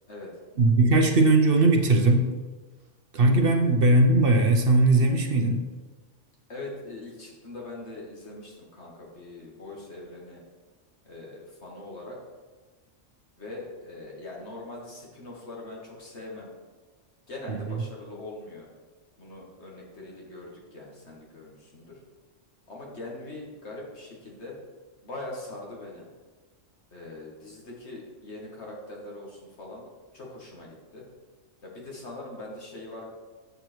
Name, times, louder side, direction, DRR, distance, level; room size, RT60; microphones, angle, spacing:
voice 1, 0.6-2.3 3.1-5.6 17.5-17.6, right 2 dB, 55° right, 4 dB, 0.9 m, -19 dB
voice 2, 6.5-10.4 11.0-12.2 13.4-16.5 17.3-18.7 19.2-22.0 22.7-24.6 25.0-26.1 26.9-29.8 30.1-31.0 31.6-33.1, left 2 dB, 65° left, -3 dB, 2.2 m, -41 dB
8.0 x 6.7 x 4.5 m, 1.3 s
omnidirectional pair, 1.2 m